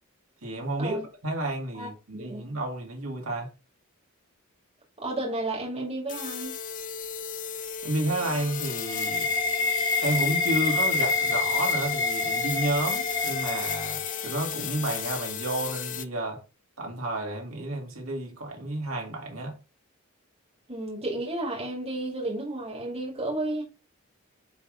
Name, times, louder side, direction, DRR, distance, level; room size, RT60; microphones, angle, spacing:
voice 1, 0.4-3.5 7.8-9.3 10.0-16.4 16.8-19.6, right 1 dB, 70° right, 2.2 m, -31 dB
voice 2, 1.7-2.4 5.0-6.6 20.7-23.6, right 2 dB, 30° right, 2.3 m, -32 dB
sound 1, 6.1-16.0, left 7 dB, 35° left, 0.5 m, -35 dB
sound 2, 8.1-14.6, left 3 dB, 20° left, 0.9 m, -28 dB
9.4 x 3.5 x 3.8 m
head